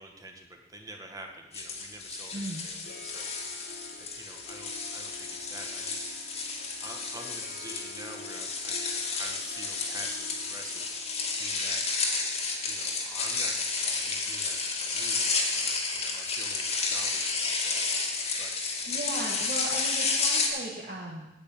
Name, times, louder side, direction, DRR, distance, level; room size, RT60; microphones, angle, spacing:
voice 1, 0.0-2.8 3.0-3.7 3.9-6.0 6.8-8.8 9.1-11.8 12.7-17.9 18.4-18.5, right 2 dB, 20° right, 2 dB, 1.6 m, -47 dB
sound 1, 1.5-20.5, left 4 dB, 35° left, 2.2 m, -31 dB
Harp, 2.2-14.3, left 2 dB, 55° left, 1.8 m, -50 dB
voice 2, 2.3-2.6 18.8-21.3, right 1 dB, 45° right, -6 dB, 2.1 m, -37 dB
9.4 x 8.8 x 8.7 m, 0.99 s
head